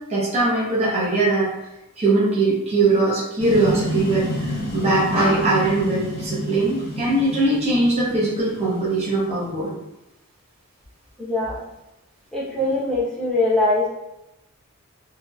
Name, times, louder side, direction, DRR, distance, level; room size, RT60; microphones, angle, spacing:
voice 1, 0.1-1.5 2.0-9.8, right 2 dB, 30° right, -7 dB, 0.7 m, -21 dB
sound 1, 3.4-9.5, equal, 45° left, 0.7 m, -29 dB
voice 2, 11.2-11.6 12.3-13.9, left 2 dB, 5° left, -8 dB, 0.8 m, -22 dB
2.9 x 2.9 x 2.3 m, 0.92 s
head